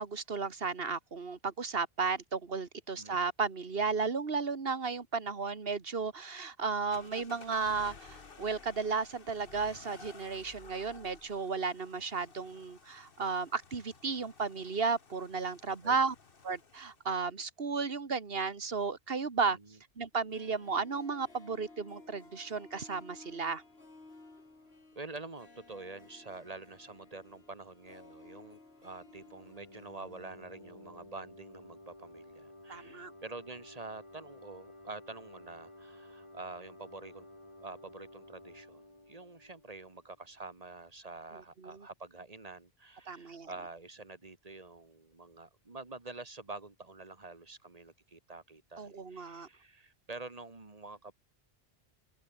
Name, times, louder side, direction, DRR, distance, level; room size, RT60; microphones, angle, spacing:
voice 1, 0.0-16.2 16.4-19.6 20.0-23.6 32.7-33.1 41.3-41.9 43.1-43.5 48.8-49.5, right 4 dB, 65° right, 2.0 m, -34 dB
sound 1, 6.9-17.1, left 4 dB, 60° left, 1.8 m, -55 dB
Harp, 20.1-31.2 31.4-31.5, left 3 dB, 85° left, 3.6 m, -56 dB
voice 2, 25.0-37.3 37.6-51.1, right 3 dB, 35° right, 2.1 m, -47 dB
sound 2, 29.0-40.4, left 1 dB, 30° left, 3.2 m, -54 dB
open air
omnidirectional pair, 1.0 m